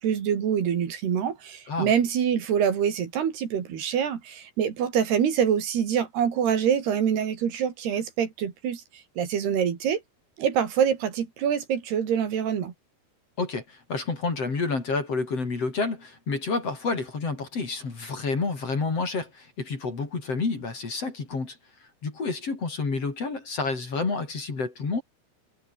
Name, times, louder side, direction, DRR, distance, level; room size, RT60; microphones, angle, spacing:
voice 1, 0.0-8.8 9.2-10.0 10.4-12.7, right 8 dB, 70° right, 4.8 m, -25 dB
voice 2, 13.4-21.6 22.0-25.0, left 4 dB, 35° left, 5.0 m, -29 dB
omnidirectional pair, 4.9 m